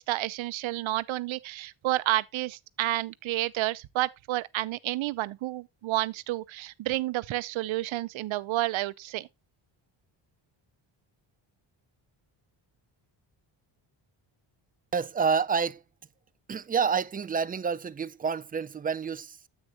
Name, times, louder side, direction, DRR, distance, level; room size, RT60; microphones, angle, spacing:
voice 1, 0.0-9.3, right 16 dB, 85° right, 0.7 m, -30 dB
voice 2, 14.9-15.8 16.5-19.5, right 6 dB, 20° right, 0.4 m, -28 dB
9.7 x 8.4 x 2.8 m
cardioid pair, 135°, 46 cm